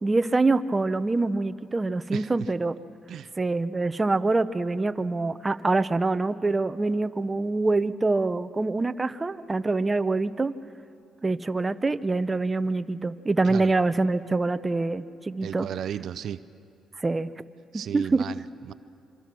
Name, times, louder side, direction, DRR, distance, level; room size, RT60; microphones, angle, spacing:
voice 1, 0.0-2.8 3.4-10.6 11.2-15.7 17.0-17.3 17.9-18.2, right 3 dB, 20° right, 12 dB, 0.8 m, -25 dB
voice 2, 2.1-2.5 3.1-3.3 13.4-13.7 15.4-16.4 17.7-18.7, right 9 dB, 70° right, 14 dB, 0.6 m, -35 dB
26.5 x 24.5 x 6.2 m, 2.7 s
cardioid pair, 90°, 0 cm